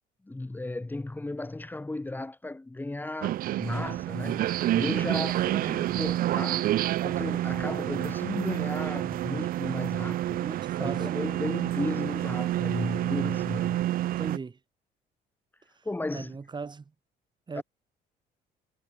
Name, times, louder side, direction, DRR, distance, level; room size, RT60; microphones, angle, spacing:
voice 1, 0.3-4.5 4.7-6.7 7.0-10.5 10.8-13.8 15.8-16.4 17.5-17.6, left 2 dB, 10° left, 2.3 m, -35 dB
sound 1, 3.2-14.4, right 14 dB, 60° right, 0.5 m, -29 dB
voice 2, 10.4-11.3 14.2-14.6 15.8-15.9 16.1-16.8 17.5-17.6, right 4 dB, 25° right, 5.7 m, -38 dB
cardioid pair, 110°, 17 cm